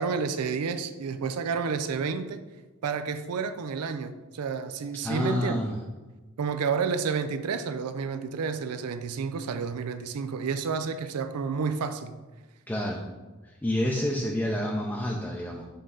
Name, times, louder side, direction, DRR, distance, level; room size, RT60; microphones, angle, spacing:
voice 1, 0.0-2.4 2.8-5.6 6.4-12.2, right 5 dB, 90° right, 10 dB, 0.4 m, -30 dB
voice 2, 5.0-5.8 12.7-13.0 13.4-15.6, left 1 dB, 10° left, -1 dB, 0.5 m, -28 dB
5.5 x 3.7 x 5.5 m, 1.2 s
head